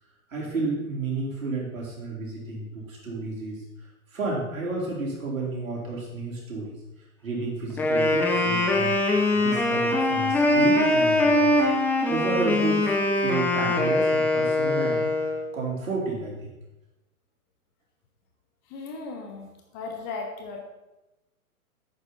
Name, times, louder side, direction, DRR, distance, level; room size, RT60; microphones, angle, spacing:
voice 1, 0.3-3.6 4.1-6.8 7.2-8.9 9.3-11.5 11.8-16.5, right 3 dB, 60° right, -4 dB, 4.5 m, -31 dB
Wind instrument woodwind instrument, 7.7-15.4, left 2 dB, 5° left, 0.6 m, -22 dB
voice 2, 18.7-19.5 19.7-20.6, left 4 dB, 25° left, 2 dB, 1.3 m, -36 dB
11.5 x 8.9 x 4.3 m, 1.0 s
figure-of-eight pair, 115°, 44 cm